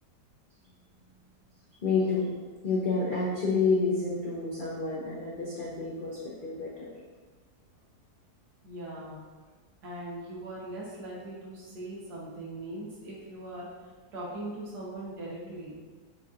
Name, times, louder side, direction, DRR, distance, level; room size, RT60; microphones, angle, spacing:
voice 1, 1.8-2.3 2.6-6.9, left 4 dB, 60° left, -6 dB, 0.5 m, -29 dB
voice 2, 8.6-9.2 9.8-13.7 14.1-15.8, right 1 dB, 70° right, -5 dB, 1.6 m, -40 dB
5.8 x 2.9 x 2.5 m, 1.4 s
omnidirectional pair, 1.8 m